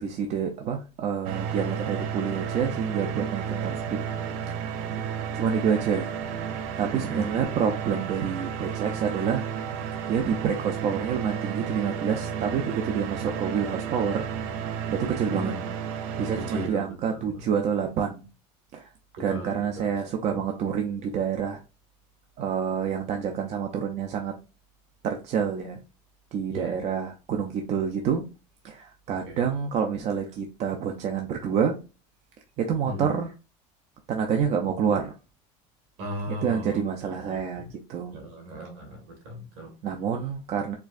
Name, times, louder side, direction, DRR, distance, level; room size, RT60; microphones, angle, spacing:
voice 1, 0.0-4.0 4.5-4.9 5.3-6.1 6.8-9.4 10.0-14.3 14.9-15.5 16.2-18.3 18.7-18.9 19.2-21.6 22.4-24.3 25.0-25.8 26.3-28.2 28.6-31.8 32.6-33.3 34.1-35.1 36.3-38.2 39.8-40.7, right 7 dB, 45° right, 0.5 m, -28 dB
sound 1, 1.2-16.7, right 7 dB, 85° right, 0.6 m, -32 dB
voice 2, 6.9-7.5 15.3-15.7 16.4-17.4 19.2-19.9 20.3-20.4 26.5-26.8 29.3-29.5 32.9-33.2 36.0-37.6 38.1-39.7, equal, 70° right, 2.0 m, -38 dB
4.5 x 2.4 x 2.4 m
supercardioid pair, 130°, 16 cm